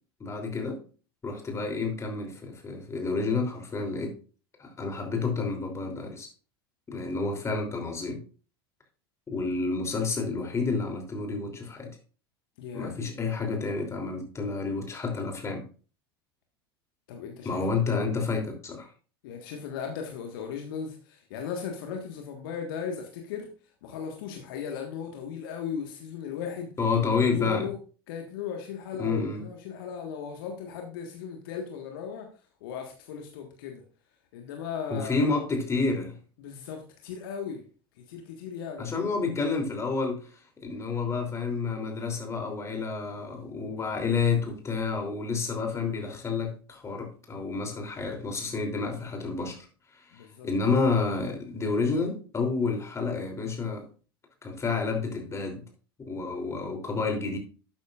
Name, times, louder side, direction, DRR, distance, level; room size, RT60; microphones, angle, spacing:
voice 1, 0.2-0.8 1.2-4.1 4.6-6.3 6.9-8.2 9.3-11.9 12.7-15.7 17.4-18.9 26.8-27.7 29.0-29.4 34.9-36.1 38.8-40.3 40.6-49.7 50.1-53.8 54.4-55.6 56.0-57.4, left 4 dB, 20° left, 3 dB, 3.2 m, -29 dB
voice 2, 12.6-12.9 17.1-18.2 19.2-23.5 23.8-26.7 27.3-27.8 28.1-32.3 32.6-33.8 34.3-35.3 36.4-37.6 38.0-39.1 50.1-50.5, left 7 dB, 60° left, 3 dB, 1.6 m, -37 dB
12.0 x 8.9 x 2.5 m, 0.36 s
figure-of-eight pair, 75°, 13 cm